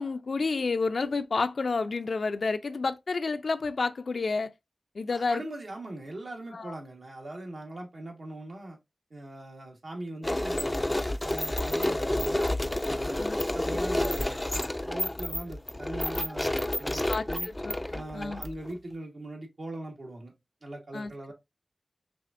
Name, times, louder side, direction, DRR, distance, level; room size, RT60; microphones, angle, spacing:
voice 1, 0.0-4.5 4.9-5.4 6.5-6.8 13.2-13.4 17.1-18.4 20.9-21.1, left 4 dB, 85° left, 0.4 m, -30 dB
voice 2, 5.1-8.8 9.1-12.5 12.8-13.3 13.5-17.5 17.9-20.3 20.6-21.3, right 1 dB, 70° right, 1.4 m, -41 dB
sound 1, 10.2-18.7, left 1 dB, 20° left, 0.3 m, -30 dB
6.1 x 2.5 x 2.5 m
wide cardioid pair, 80°, 0 cm